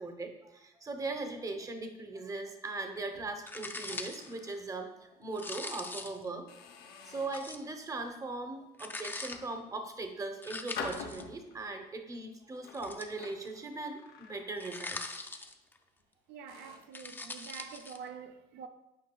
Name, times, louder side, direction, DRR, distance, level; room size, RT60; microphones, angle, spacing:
voice 1, 0.0-6.5 6.8-15.2, right 3 dB, 20° right, 0.7 m, -39 dB
Room door open and close, 2.9-4.7 5.1-5.3 5.8-6.0 6.5-7.5 8.1-8.4 9.1-10.1 10.7-11.7 12.5-14.9 15.2-15.4 16.0-16.1 16.5-17.0, left 6 dB, 75° left, 0.7 m, -47 dB
sound 1, 3.5-4.3 5.3-6.3 7.3-7.7 8.8-9.4 10.4-11.2 12.7-13.5 14.6-15.8 16.8-18.0, left 2 dB, 10° left, 0.4 m, -42 dB
voice 2, 16.3-18.7, right 7 dB, 80° right, 0.5 m, -46 dB
8.5 x 4.8 x 2.3 m
cardioid pair, 110°, 17 cm